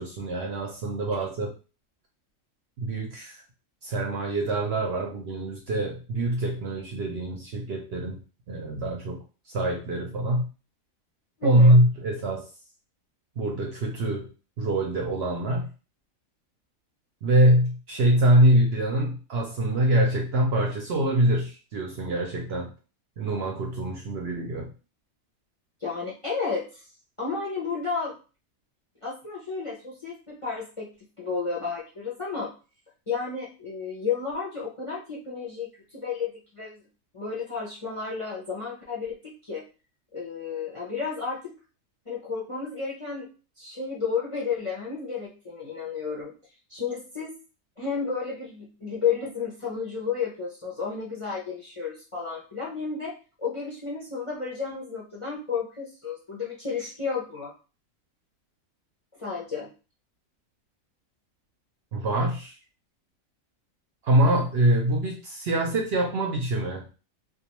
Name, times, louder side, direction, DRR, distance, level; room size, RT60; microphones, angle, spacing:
voice 1, 0.0-1.5 2.8-3.4 3.8-8.2 8.5-10.5 11.4-12.5 13.4-14.3 14.6-15.7 17.2-22.7 23.2-24.7 61.9-62.6 64.0-66.9, right 1 dB, 60° right, 0 dB, 0.7 m, -24 dB
voice 2, 11.4-11.8 25.8-26.8 27.2-28.1 29.0-30.9 31.2-32.5 33.1-35.7 35.9-36.8 37.1-39.6 40.1-41.5 42.1-43.3 43.6-46.3 46.7-47.3 47.8-53.1 53.4-57.5 59.2-59.7, left 5 dB, 40° left, -4 dB, 0.5 m, -32 dB
2.4 x 2.3 x 2.9 m, 0.34 s
omnidirectional pair, 1.4 m